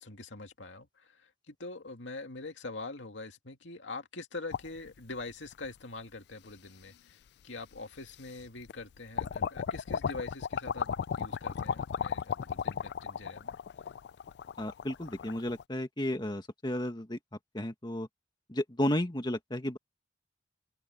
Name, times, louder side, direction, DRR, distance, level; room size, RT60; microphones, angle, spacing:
voice 1, 0.0-13.6, left 3 dB, 80° left, 2.4 m, -44 dB
sound 1, 4.5-5.7 6.5-6.6 7.7-7.8 8.3-8.8 9.2-15.6, left 7 dB, 60° left, 0.3 m, -35 dB
voice 2, 14.6-17.2 17.5-18.1 18.5-19.8, left 1 dB, 25° left, 1.7 m, -33 dB
open air
head